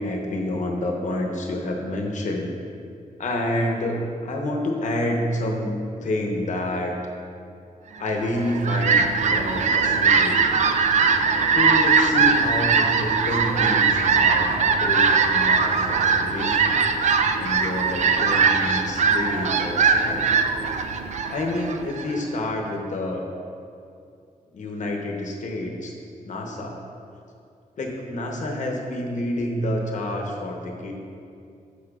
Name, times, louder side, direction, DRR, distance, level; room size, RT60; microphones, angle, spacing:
voice 1, 0.0-2.5 3.2-6.9 8.0-10.5 11.5-16.8 17.4-20.3 21.3-23.3 24.5-25.9 26.3-26.8 27.8-30.9, left 1 dB, 60° left, 1 dB, 0.9 m, -28 dB
Fowl, 8.3-22.2, right 5 dB, 55° right, 0.4 m, -21 dB
13.5 x 4.7 x 2.4 m, 2.5 s
wide cardioid pair, 115°, 14 cm